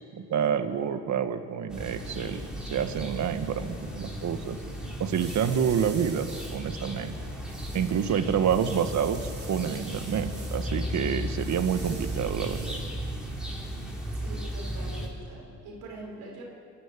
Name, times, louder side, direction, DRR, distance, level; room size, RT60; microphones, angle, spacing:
voice 1, 0.1-4.6 5.0-7.3 7.7-12.7, right 8 dB, 65° right, 9 dB, 1.5 m, -28 dB
sound 1, 1.7-15.1, equal, ahead, 4.5 m, -35 dB
sound 2, 4.3-13.5, right 3 dB, 35° right, 3.9 m, -48 dB
voice 2, 5.7-6.1 14.1-16.4, right 2 dB, 90° right, -1 dB, 4.6 m, -44 dB
24.0 x 12.0 x 9.8 m, 2.5 s
cardioid pair, 90°, 31 cm